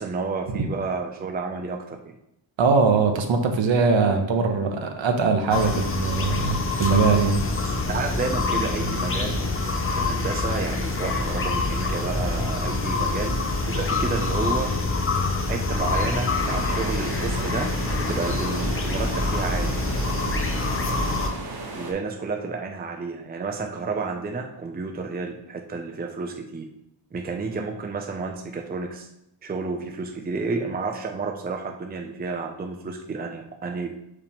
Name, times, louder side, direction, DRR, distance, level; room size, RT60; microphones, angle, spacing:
voice 1, 0.0-2.1 7.8-9.6 9.9-13.4 13.7-14.7 15.5-19.8 21.7-26.7 27.1-29.1 29.4-34.0, right 4 dB, 20° right, 3 dB, 0.5 m, -31 dB
voice 2, 2.6-7.4, right 4 dB, 70° right, 5 dB, 1.0 m, -21 dB
sound 1, 5.5-21.3, left 3 dB, 30° left, 0.6 m, -26 dB
sound 2, 16.4-21.9, right 2 dB, 50° right, 1.2 m, -36 dB
6.3 x 4.9 x 3.6 m, 0.79 s
wide cardioid pair, 170°, 48 cm